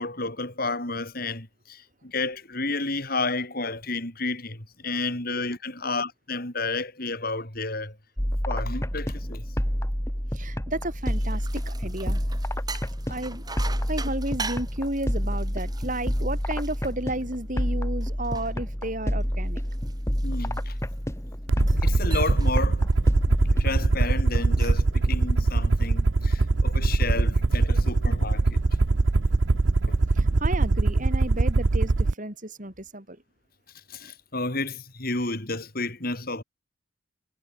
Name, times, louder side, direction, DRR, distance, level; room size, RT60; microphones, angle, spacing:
voice 1, 0.0-8.0 8.4-9.4 20.2-20.7 21.8-22.9 23.6-28.8 29.9-30.0 33.9-36.4, left 3 dB, 50° left, 5.1 m, -31 dB
sound 1, 8.2-25.8, equal, 15° left, 3.1 m, -29 dB
voice 2, 10.3-12.2 13.1-13.4 13.9-19.6 30.1-33.2, right 1 dB, 40° right, 7.5 m, -32 dB
sound 2, 10.8-17.6 18.0-21.0 21.5-21.9 22.1-22.6 22.9-23.2 24.3-24.9, right 4 dB, 20° right, 7.9 m, -42 dB
Aircraft, 21.5-32.1, right 3 dB, 65° right, 0.8 m, -22 dB
head